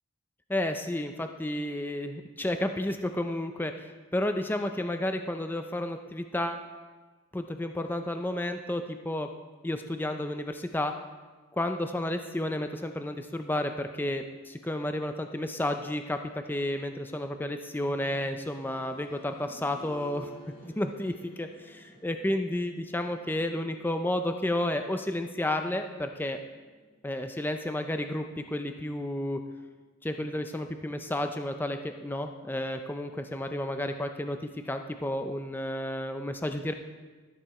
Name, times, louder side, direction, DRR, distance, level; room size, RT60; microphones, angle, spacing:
voice 1, 0.5-6.7 7.3-9.3 9.6-10.9 11.5-16.2 16.5-20.3 20.6-26.4 27.0-29.4 30.0-34.4 34.7-36.7, left 1 dB, 10° left, 6 dB, 0.4 m, -31 dB
sound 1, 17.8-28.5 28.8-28.9 29.8-29.9, right 1 dB, 45° left, 1.7 m, -54 dB
13.0 x 6.8 x 4.2 m, 1.3 s
head